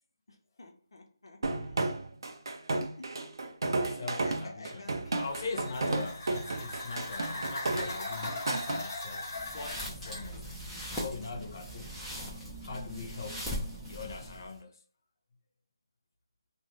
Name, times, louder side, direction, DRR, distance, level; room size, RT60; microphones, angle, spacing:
voice 1, 0.3-2.1 3.0-3.1 3.6-5.7, left 2 dB, 80° left, 0.8 m, -50 dB
sound 1, 1.4-8.8, right 2 dB, 60° right, 0.5 m, -33 dB
voice 2, 3.9-10.5 10.9-11.9 12.6-13.5 13.8-14.8, left 3 dB, 50° left, 0.6 m, -41 dB
sound 2, 5.1-10.4, left 2 dB, 30° left, 0.9 m, -39 dB
sound 3, 9.3-14.6, equal, ahead, 0.6 m, -40 dB
2.6 x 2.2 x 3.1 m
figure-of-eight pair, 160°, 2 cm